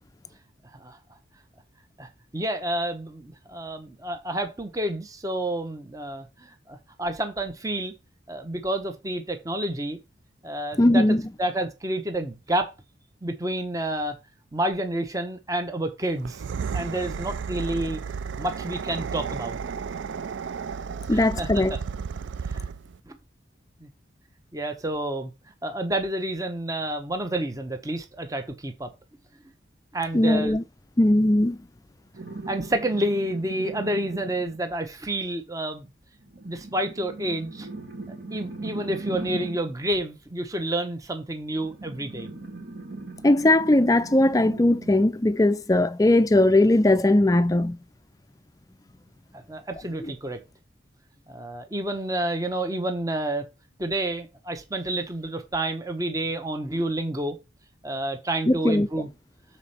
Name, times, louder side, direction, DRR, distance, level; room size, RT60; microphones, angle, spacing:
voice 1, 2.0-7.9 8.3-10.0 10.4-12.7 13.2-14.1 14.5-16.4 16.7-18.0 18.4-19.6 21.1-21.8 22.5-22.6 23.1-23.2 23.8-23.9 24.5-25.3 25.6-28.9 29.9-30.6 32.5-35.9 36.4-37.7 38.3-42.3 49.3-50.4 51.3-53.4 53.8-57.4 57.8-59.1, right 1 dB, 20° right, 0.9 m, -29 dB
voice 2, 10.8-11.2 21.1-21.8 30.1-30.6 31.0-31.6 43.2-47.8 50.0-50.1 58.5-58.9, left 1 dB, 20° left, 0.4 m, -19 dB
sound 1, 16.2-23.0, right 6 dB, 80° right, 0.4 m, -33 dB
sound 2, 32.1-34.6 36.2-39.7 41.5-45.1 46.7-46.8, right 2 dB, 60° right, 2.4 m, -38 dB
7.1 x 4.3 x 4.3 m
head